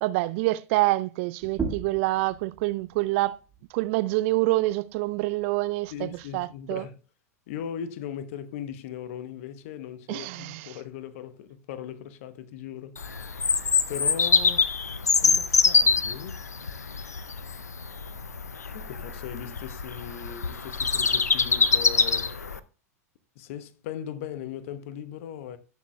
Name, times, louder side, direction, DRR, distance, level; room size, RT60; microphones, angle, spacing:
voice 1, 0.0-3.4 3.7-6.9 10.1-10.8, right 19 dB, 50° right, 0.4 m, -26 dB
sound 1, 1.4-6.6, right 5 dB, 20° right, 1.9 m, -40 dB
voice 2, 5.9-7.0 7.5-13.0 13.9-14.7 15.2-16.4 18.7-22.3 23.4-25.6, left 9 dB, 55° left, 0.9 m, -38 dB
Bird vocalization bird call bird song, 13.0-22.6, left 5 dB, 85° left, 0.5 m, -25 dB
17.0 x 6.5 x 2.2 m
figure-of-eight pair, 90°, 9 cm